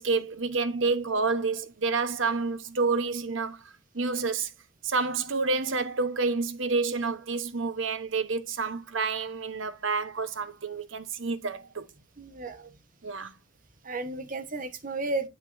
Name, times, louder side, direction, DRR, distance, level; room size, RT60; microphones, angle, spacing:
voice 1, 0.0-3.6 3.9-4.5 4.8-11.9 13.0-13.3, right 4 dB, 80° right, 1.0 m, -29 dB
voice 2, 12.2-12.7 13.8-15.3, right 2 dB, 45° right, 1.3 m, -33 dB
8.1 x 7.5 x 2.6 m
head